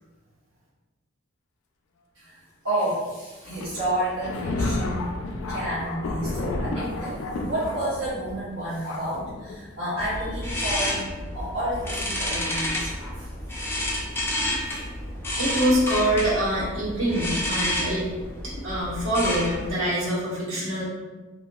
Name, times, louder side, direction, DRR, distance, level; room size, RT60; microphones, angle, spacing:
voice 1, 2.6-5.1 5.5-7.2 7.4-13.3 14.0-14.2 14.6-14.9, right 1 dB, 65° right, -11 dB, 0.9 m, -30 dB
Thunder, 3.4-13.4 14.1-14.2 15.2-15.4 16.2-16.3, left 2 dB, 85° left, 0.4 m, -33 dB
sound 1, 10.0-19.7, left 1 dB, 10° left, 0.4 m, -30 dB
voice 2, 15.4-18.1 18.4-20.8, right 1 dB, 80° right, -8 dB, 1.4 m, -25 dB
3.8 x 2.8 x 2.3 m, 1.3 s
head